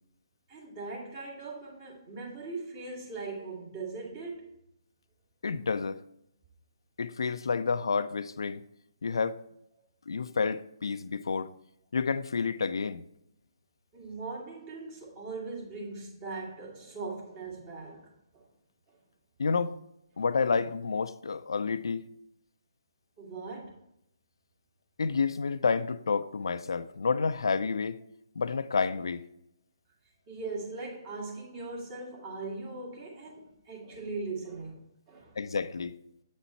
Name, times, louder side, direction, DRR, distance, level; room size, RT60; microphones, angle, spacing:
voice 1, 0.5-4.6 13.9-18.5 23.2-23.8 30.3-35.4, right 3 dB, 30° right, 1.9 m, -40 dB
voice 2, 5.4-6.0 7.0-8.6 9.0-9.4 10.1-11.5 11.9-13.0 19.4-19.8 20.2-22.1 25.0-28.0 28.4-29.2 35.4-35.9, left 5 dB, 75° left, 0.4 m, -29 dB
8.2 x 4.1 x 4.4 m
hypercardioid pair, 150°, 3 cm